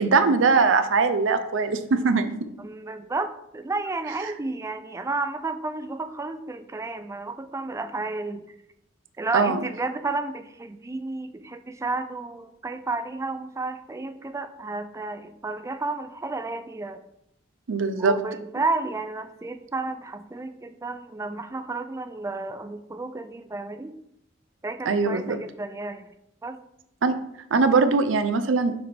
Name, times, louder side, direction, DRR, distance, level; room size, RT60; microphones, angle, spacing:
voice 1, 0.0-2.3 9.3-9.6 17.7-18.1 24.9-25.4 27.0-27.1 27.5-28.7, right 4 dB, 85° right, 10 dB, 0.5 m, -21 dB
voice 2, 2.6-8.5 9.2-17.0 18.0-24.0 24.6-26.1 26.4-26.6, right 3 dB, 15° right, 10 dB, 0.4 m, -32 dB
6.5 x 3.4 x 4.3 m, 0.78 s
head